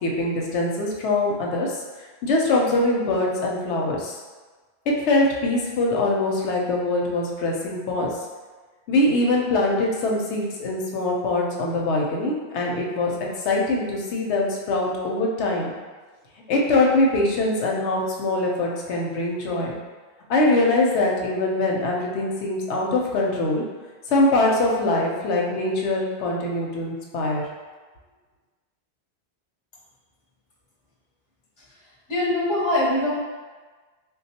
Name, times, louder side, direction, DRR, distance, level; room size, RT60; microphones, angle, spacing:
voice 1, 0.0-1.8 2.2-4.2 4.9-8.1 8.9-15.8 16.5-19.7 20.3-23.6 24.1-27.4, left 2 dB, 90° left, -1 dB, 0.9 m, -23 dB
voice 2, 32.1-33.1, left 1 dB, 30° left, -8 dB, 0.6 m, -22 dB
3.6 x 2.3 x 2.8 m, 1.4 s
omnidirectional pair, 1.1 m